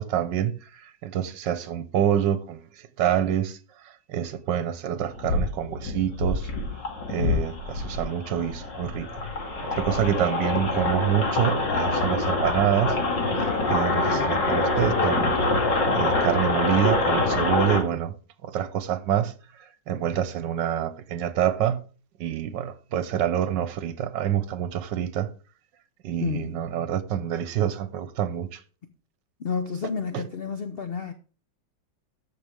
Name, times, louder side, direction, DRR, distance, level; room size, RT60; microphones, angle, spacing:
voice 1, 0.0-2.6 3.0-3.6 4.1-6.5 7.1-9.1 9.8-13.0 13.4-15.3 15.9-18.1 18.4-19.3 19.9-21.8 22.2-25.3 26.0-28.6 30.1-30.2, right 10 dB, 80° right, 1.5 m, -26 dB
sound 1, 5.1-17.8, left 2 dB, 75° left, 2.7 m, -25 dB
voice 2, 13.9-14.4 26.2-26.6 29.4-31.1, left 6 dB, 55° left, 0.6 m, -31 dB
13.5 x 6.2 x 3.4 m
omnidirectional pair, 1.9 m